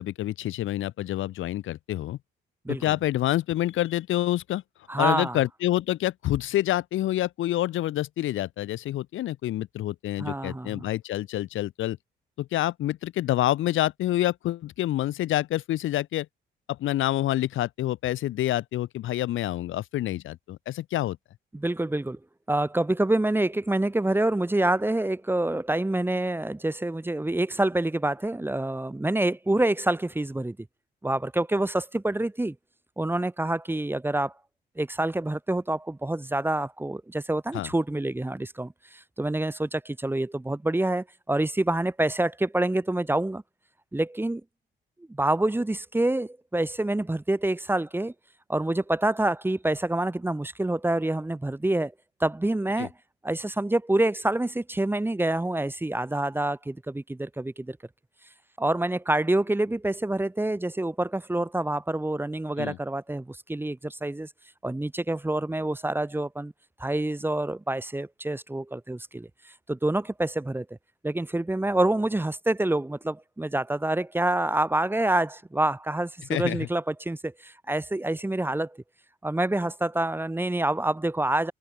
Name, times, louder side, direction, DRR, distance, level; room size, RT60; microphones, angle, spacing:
voice 1, 0.0-2.2 2.7-4.6 5.0-12.0 12.4-16.3 16.7-21.2 37.5-37.7 52.8-52.9 62.6-62.8 76.3-76.7, left 14 dB, 80° left, 1.8 m, -27 dB
voice 2, 4.9-5.4 10.2-10.8 21.5-22.2 22.5-30.6 31.0-32.5 33.0-34.3 34.8-43.4 43.9-44.4 45.1-48.1 48.5-51.9 52.2-52.9 53.2-57.8 58.6-64.3 64.6-66.5 66.8-69.3 69.7-70.6 71.0-78.8 79.2-81.5, right 1 dB, 10° right, 1.5 m, -27 dB
cardioid pair, 90°, 20 cm